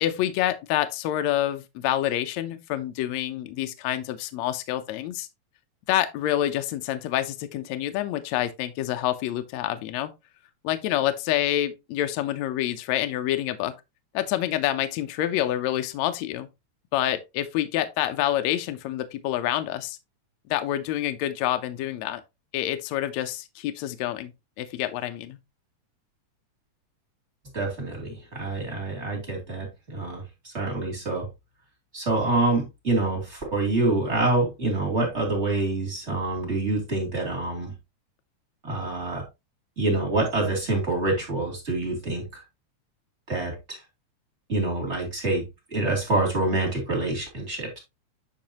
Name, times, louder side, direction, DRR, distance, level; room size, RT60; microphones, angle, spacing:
voice 1, 0.0-5.3 5.9-10.1 10.6-13.7 14.1-16.5 16.9-20.0 20.5-22.2 22.5-24.3 24.6-25.4, left 13 dB, 75° left, 1.9 m, -27 dB
voice 2, 27.5-31.3 31.9-37.7 38.6-39.2 39.8-42.2 43.3-43.8 44.5-45.4 45.7-47.8, right 2 dB, 25° right, 2.9 m, -26 dB
9.0 x 5.2 x 2.9 m
omnidirectional pair, 3.4 m